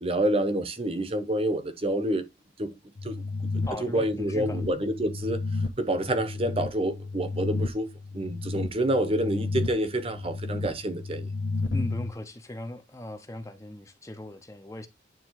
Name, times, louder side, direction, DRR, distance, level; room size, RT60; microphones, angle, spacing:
voice 1, 0.0-2.2 2.6-2.7 3.0-3.2 3.5-5.4 5.8-7.9 8.1-11.3, right 1 dB, 30° right, 1.0 m, -28 dB
sound 1, 3.0-12.1, left 3 dB, 85° left, 1.4 m, -33 dB
voice 2, 3.7-4.6 11.7-14.9, left 1 dB, 15° left, 0.8 m, -39 dB
9.4 x 3.6 x 4.6 m
head